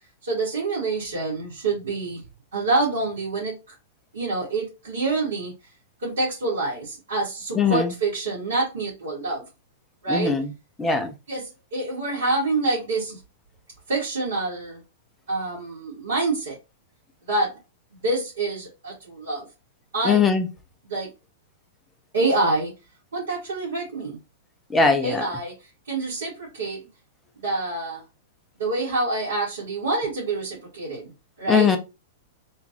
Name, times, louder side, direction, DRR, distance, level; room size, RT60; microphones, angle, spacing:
voice 1, 0.2-2.2 2.5-3.6 4.1-5.5 6.0-9.4 10.0-10.4 11.3-13.2 13.9-14.8 15.3-16.6 17.3-17.6 18.0-19.5 19.9-20.2 20.9-21.1 22.1-22.7 23.1-24.2 25.0-25.5 25.9-26.8 27.4-28.0 28.6-31.1 31.4-31.7, right 2 dB, 65° right, 2.2 m, -26 dB
voice 2, 7.5-7.9 10.1-10.5 10.8-11.1 20.0-20.5 24.7-25.2 31.5-31.8, left 5 dB, 10° left, 0.7 m, -20 dB
3.6 x 3.0 x 3.0 m
figure-of-eight pair, 100°, 0 cm